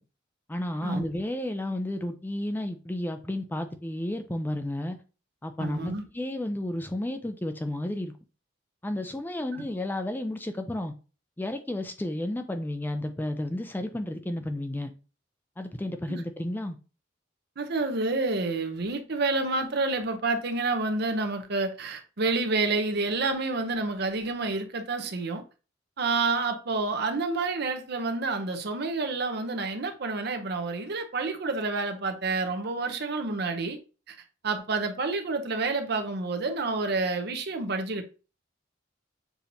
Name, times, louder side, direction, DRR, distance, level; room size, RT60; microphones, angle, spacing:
voice 1, 0.5-5.0 5.4-8.1 8.8-10.9 11.4-14.9 15.6-16.8, left 1 dB, 10° left, 0.4 m, -32 dB
voice 2, 5.6-6.1 9.5-9.6 16.1-16.2 17.6-25.4 26.0-33.8 34.1-34.2 34.4-38.0, right 3 dB, 60° right, 0.8 m, -29 dB
6.8 x 2.8 x 2.7 m
head